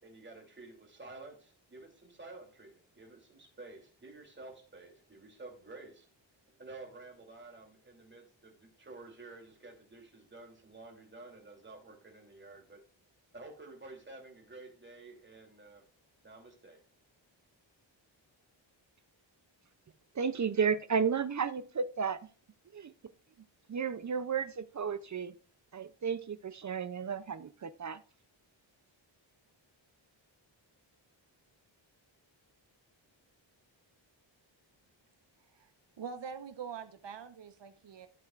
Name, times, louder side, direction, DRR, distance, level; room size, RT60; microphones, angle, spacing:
voice 1, 0.0-6.1 6.6-12.8 13.3-15.8 16.2-16.8, right 2 dB, 25° right, 1 dB, 2.8 m, -51 dB
voice 2, 20.2-22.2 22.7-22.9 23.7-25.3 25.7-28.0, right 6 dB, 40° right, 15 dB, 0.5 m, -33 dB
voice 3, 36.0-38.1, right 6 dB, 65° right, 10 dB, 1.0 m, -44 dB
13.5 x 7.7 x 2.4 m, 0.39 s
wide cardioid pair, 150°, 47 cm